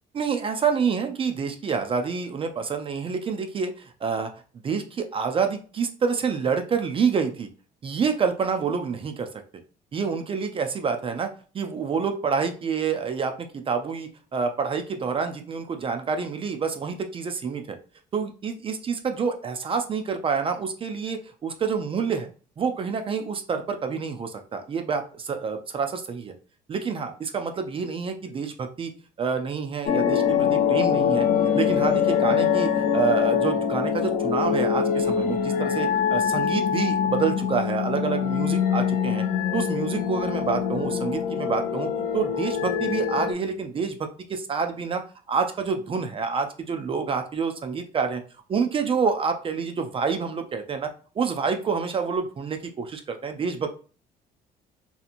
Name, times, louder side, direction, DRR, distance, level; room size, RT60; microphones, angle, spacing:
voice 1, 0.1-4.3 4.6-7.5 7.8-9.3 9.9-11.3 11.5-17.8 18.1-22.3 22.6-26.3 26.7-28.9 29.2-31.3 31.5-39.2 39.5-41.9 42.1-45.0 45.3-48.2 48.5-50.9 51.2-53.7, right 5 dB, 30° right, 6 dB, 0.4 m, -27 dB
sound 1, 29.9-43.3, left 8 dB, 55° left, 0.5 m, -24 dB
2.8 x 2.5 x 2.5 m, 0.38 s
cardioid pair, 110°, 17 cm